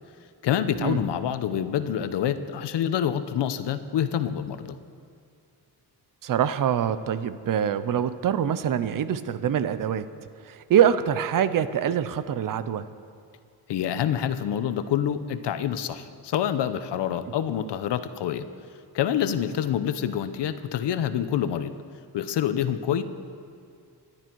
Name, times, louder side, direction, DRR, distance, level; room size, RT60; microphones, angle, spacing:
voice 1, 0.4-4.8 13.7-18.4 18.9-21.7 22.1-23.0, left 9 dB, 80° left, 11 dB, 1.0 m, -27 dB
voice 2, 6.2-10.1 10.5-12.9, right 9 dB, 50° right, 13 dB, 0.7 m, -24 dB
26.5 x 12.0 x 4.6 m, 2.4 s
wide cardioid pair, 155°, 42 cm